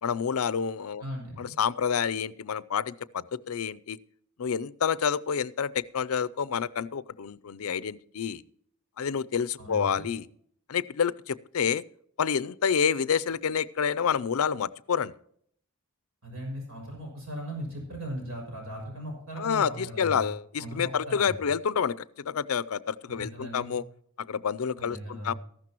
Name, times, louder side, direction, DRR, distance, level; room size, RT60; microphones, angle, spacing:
voice 1, 0.0-1.0 1.4-4.0 4.4-8.4 9.0-10.3 10.7-11.8 12.2-15.1 19.4-23.8 24.3-25.3, left 7 dB, 85° left, 19 dB, 0.5 m, -28 dB
voice 2, 1.0-1.5 9.6-10.0 16.2-20.3 20.6-21.4 23.1-23.8 24.8-25.4, right 1 dB, 80° right, 0 dB, 6.4 m, -38 dB
14.5 x 12.0 x 3.0 m, 0.65 s
head